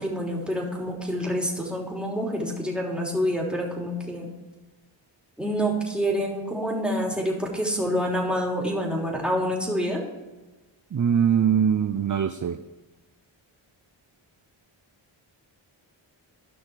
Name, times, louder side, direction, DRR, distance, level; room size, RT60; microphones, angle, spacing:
voice 1, 0.0-4.3 5.4-10.0, equal, ahead, -3 dB, 3.3 m, -27 dB
voice 2, 10.9-12.6, right 8 dB, 40° right, 10 dB, 0.6 m, -22 dB
14.0 x 5.9 x 4.8 m, 1.2 s
cardioid pair, 55°, 49 cm